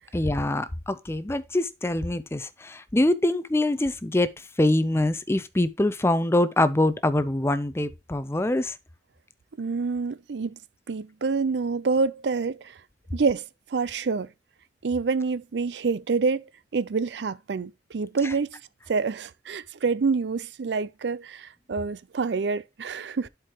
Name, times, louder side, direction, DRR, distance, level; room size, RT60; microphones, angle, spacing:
voice 1, 0.1-8.8 18.2-18.3, left 1 dB, 15° left, 0.5 m, -24 dB
voice 2, 9.6-10.6 10.9-12.8 13.1-14.3 14.8-18.6 18.9-23.3, right 4 dB, 80° right, 0.5 m, -27 dB
11.5 x 4.7 x 2.9 m
head